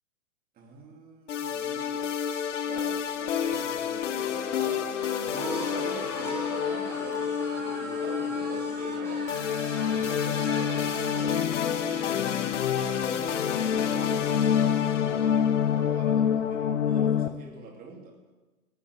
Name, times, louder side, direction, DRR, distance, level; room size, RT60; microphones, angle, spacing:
voice 1, 0.6-2.2 2.6-4.9 5.2-9.3 9.8-18.1, right 4 dB, 20° right, 1 dB, 2.7 m, -43 dB
sound 1, 1.3-17.3, left 8 dB, 55° left, 1.0 m, -27 dB
sound 2, 2.9-15.9, right 7 dB, 55° right, 1.4 m, -47 dB
sound 3, 5.3-11.2, equal, 5° left, 4.3 m, -41 dB
24.5 x 11.5 x 3.5 m, 1.2 s
figure-of-eight pair, 120°, 43 cm